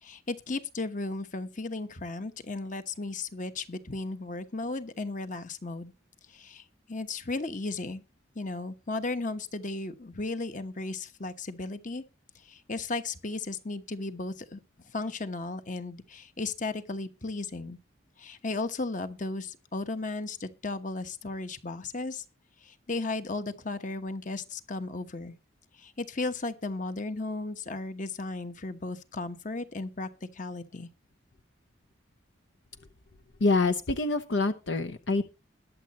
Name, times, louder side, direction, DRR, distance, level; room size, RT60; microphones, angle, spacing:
voice 1, 0.0-5.9 6.3-8.0 8.3-12.0 12.3-14.6 14.9-17.8 18.2-22.2 22.6-25.4 25.7-30.9, left 3 dB, 40° left, 1.1 m, -35 dB
voice 2, 33.4-35.3, left 3 dB, 60° left, 0.8 m, -26 dB
21.0 x 7.5 x 3.0 m
head